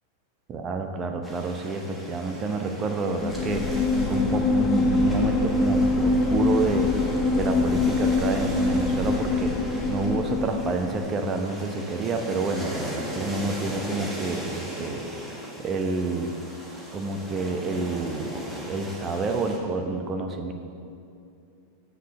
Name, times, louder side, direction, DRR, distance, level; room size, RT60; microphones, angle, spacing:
voice 1, 0.5-15.0 15.6-16.3 16.9-20.5, right 3 dB, 25° right, 5 dB, 0.8 m, -29 dB
sound 1, 1.2-19.6, equal, 10° right, 1.6 m, -39 dB
sound 2, 3.2-11.0, left 3 dB, 20° left, 0.7 m, -24 dB
6.8 x 6.7 x 6.3 m, 2.5 s
figure-of-eight pair, 90°, 0 cm